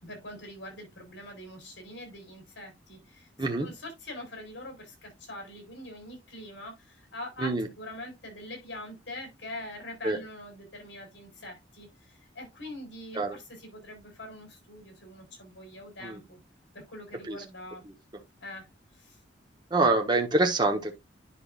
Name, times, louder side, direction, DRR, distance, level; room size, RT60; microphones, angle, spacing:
voice 1, 0.0-3.3 3.6-16.4 16.7-17.8 18.4-18.7 18.9-19.2, left 1 dB, 70° left, 4.7 m, -43 dB
voice 2, 19.7-20.9, right 2 dB, 25° right, 1.1 m, -25 dB
10.0 x 5.7 x 2.5 m
head